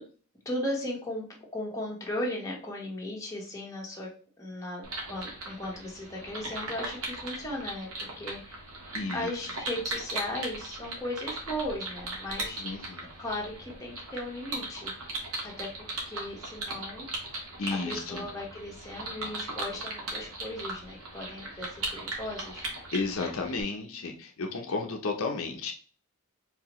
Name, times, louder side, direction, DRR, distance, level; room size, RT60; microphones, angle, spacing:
voice 1, 0.4-1.2 1.5-4.1 4.4-8.6 9.1-12.6 13.2-17.1 17.7-22.7, left 1 dB, 15° left, -3 dB, 1.3 m, -37 dB
badger eating peanuts, 4.8-23.6, right 2 dB, 80° right, 1.6 m, -38 dB
voice 2, 8.9-9.3 12.6-13.1 17.6-18.3 22.9-25.7, left 3 dB, 70° left, 3 dB, 0.7 m, -33 dB
4.7 x 3.4 x 3.0 m, 0.40 s
head